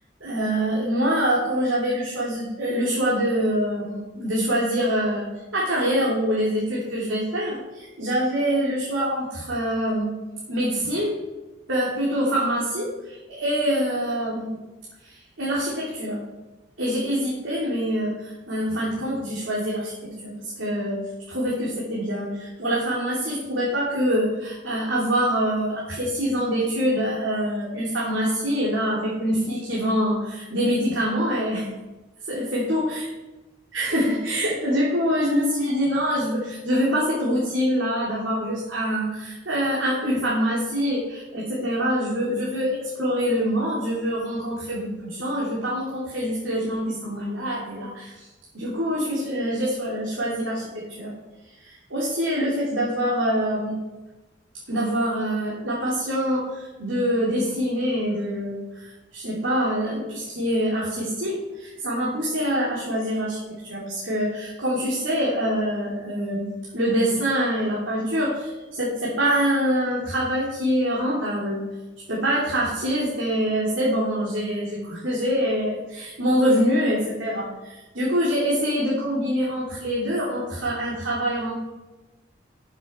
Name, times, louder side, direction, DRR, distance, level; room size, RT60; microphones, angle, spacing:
voice 1, 0.2-5.3 5.5-10.2 10.5-11.2 11.7-14.5 15.0-16.2 16.8-21.0 21.3-31.7 32.3-33.0 33.7-48.3 48.5-51.1 51.6-53.8 54.7-63.4 63.7-66.5 66.7-71.6 72.1-81.5, equal, 90° right, -6 dB, 2.8 m, -25 dB
14.0 x 7.3 x 4.4 m, 1.1 s
head